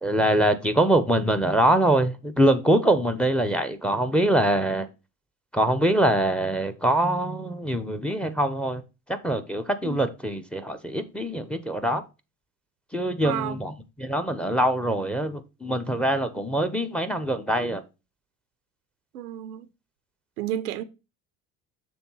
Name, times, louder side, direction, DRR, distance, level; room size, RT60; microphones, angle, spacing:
voice 1, 0.0-4.9 5.5-8.8 9.2-12.0 12.9-13.7 14.0-17.8, right 1 dB, ahead, 0.9 m, -23 dB
voice 2, 13.2-13.6 19.1-19.7 20.4-20.8, right 11 dB, 90° right, 0.7 m, -31 dB
7.0 x 3.5 x 5.6 m
hypercardioid pair, 60°, 44 cm